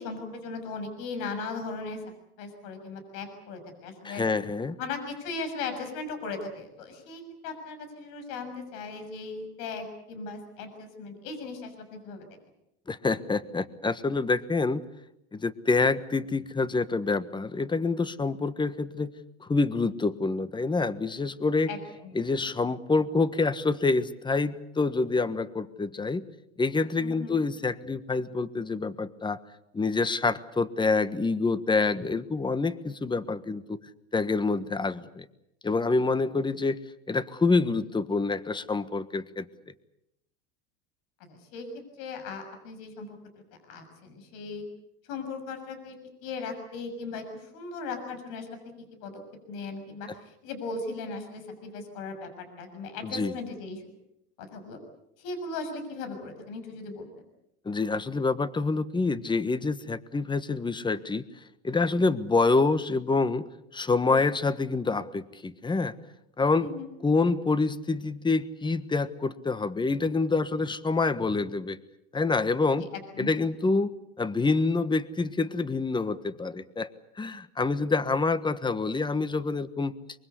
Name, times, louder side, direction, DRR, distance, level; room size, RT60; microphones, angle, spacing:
voice 1, 0.0-2.0 2.4-4.2 4.8-12.2 21.7-21.8 22.0-22.2 27.0-27.4 41.2-41.7 42.0-43.2 43.7-44.6 45.1-46.0 46.2-48.5 48.8-49.2 49.5-53.8 54.4-54.8 55.2-57.1 66.5-66.9 72.8-72.9 73.1-73.3, left 4 dB, 65° left, 7 dB, 6.7 m, -38 dB
voice 2, 4.0-4.8 12.9-14.8 15.3-19.1 19.4-21.7 22.1-26.3 26.6-29.4 29.7-33.8 34.1-35.2 35.6-36.8 37.1-39.4 53.0-53.3 57.6-61.2 61.6-63.5 63.7-65.9 66.4-66.7 67.0-71.8 72.1-72.9 73.2-76.9 77.2-79.9, left 3 dB, 15° left, 14 dB, 1.4 m, -27 dB
24.0 x 23.5 x 8.2 m, 0.80 s
supercardioid pair, 100°, 35 cm